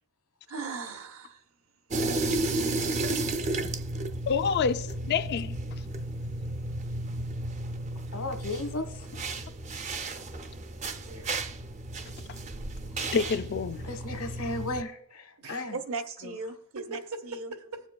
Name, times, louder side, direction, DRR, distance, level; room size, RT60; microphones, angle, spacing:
voice 1, 0.5-1.4 15.7-17.5, right 4 dB, 65° right, 0.8 m, -38 dB
sound 1, 1.9-14.8, right 2 dB, 30° right, 0.5 m, -33 dB
voice 2, 2.6-3.6 11.0-11.4 15.4-15.6 16.7-17.8, right 3 dB, 85° right, 1.3 m, -43 dB
voice 3, 4.3-5.6 13.1-13.8, left 6 dB, 45° left, 0.3 m, -27 dB
voice 4, 8.1-9.1 13.8-15.8 16.2-16.3, left 2 dB, 80° left, 1.2 m, -35 dB
19.5 x 7.1 x 2.3 m
head